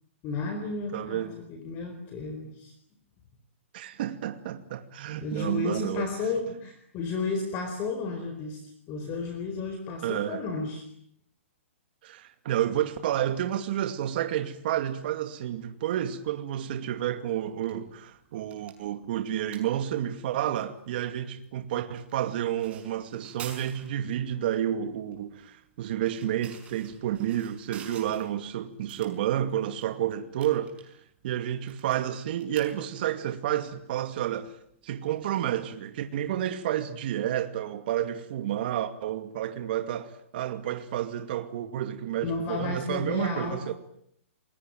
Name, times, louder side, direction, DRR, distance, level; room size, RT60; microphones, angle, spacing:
voice 1, 0.2-2.7 5.2-10.8 42.2-43.7, left 3 dB, 25° left, 4.4 m, -33 dB
voice 2, 0.9-1.3 3.7-6.1 10.0-10.4 12.0-30.7 31.2-34.5 34.8-43.7, right 11 dB, 45° right, 2.3 m, -30 dB
sound 1, 17.4-35.8, right 8 dB, 15° right, 5.8 m, -52 dB
28.5 x 22.0 x 9.2 m
hypercardioid pair, 160°, 7 cm